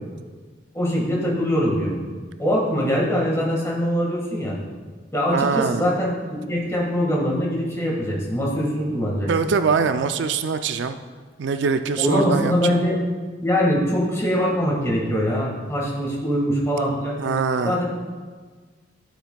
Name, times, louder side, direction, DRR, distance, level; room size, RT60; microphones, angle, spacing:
voice 1, 0.7-2.0 2.4-4.6 5.1-9.3 12.0-13.0 13.4-17.2 17.6-17.8, equal, 15° left, -3 dB, 1.7 m, -22 dB
voice 2, 5.3-5.8 9.3-11.0 11.4-12.8 17.2-17.8, right 5 dB, 70° right, 9 dB, 0.4 m, -23 dB
12.5 x 7.0 x 2.3 m, 1.5 s
head